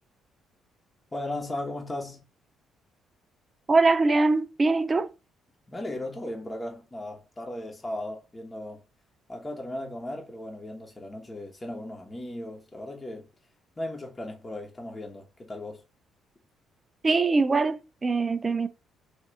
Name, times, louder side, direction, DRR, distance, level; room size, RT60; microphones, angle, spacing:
voice 1, 1.1-2.2 5.7-8.8 9.3-13.3 13.8-15.8, left 1 dB, 25° left, 1.1 m, -36 dB
voice 2, 3.7-5.1 17.0-18.7, right 3 dB, 30° right, 0.4 m, -23 dB
3.4 x 2.7 x 3.9 m
supercardioid pair, 60°, 0 cm